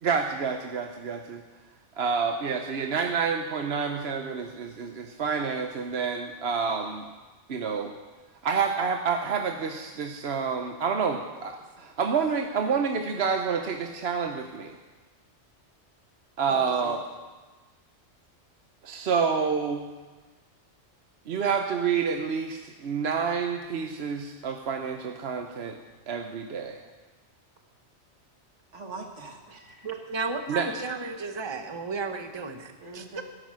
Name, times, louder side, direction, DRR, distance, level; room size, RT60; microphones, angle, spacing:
voice 1, 0.0-1.4 2.0-7.0 7.5-7.9 8.4-14.8 16.4-17.0 18.8-19.8 21.3-25.8 26.1-26.8 30.5-30.7, right 6 dB, 65° right, 4 dB, 1.0 m, -28 dB
voice 2, 16.5-17.0 28.7-30.0 32.8-33.2, right 5 dB, 85° right, 3 dB, 1.8 m, -41 dB
voice 3, 30.1-33.2, right 4 dB, 25° right, 6 dB, 0.9 m, -33 dB
13.5 x 11.0 x 6.3 m, 1.3 s
omnidirectional pair, 1.2 m